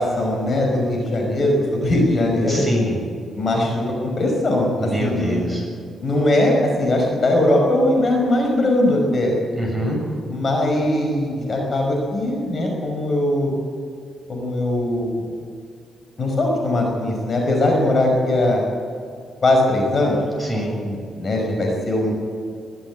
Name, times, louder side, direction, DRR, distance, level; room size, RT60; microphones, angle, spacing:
voice 1, 0.0-2.6 3.4-3.7 4.0-5.4 6.0-9.3 10.3-13.5 14.3-15.2 16.2-18.6 19.4-20.2 20.8-22.1, left 1 dB, 40° left, 1 dB, 5.3 m, -20 dB
voice 2, 2.5-3.0 4.8-5.7 9.5-10.0 20.4-20.8, equal, 5° left, -1 dB, 7.3 m, -25 dB
22.0 x 14.0 x 8.8 m, 2.4 s
cardioid pair, 120°, 0 cm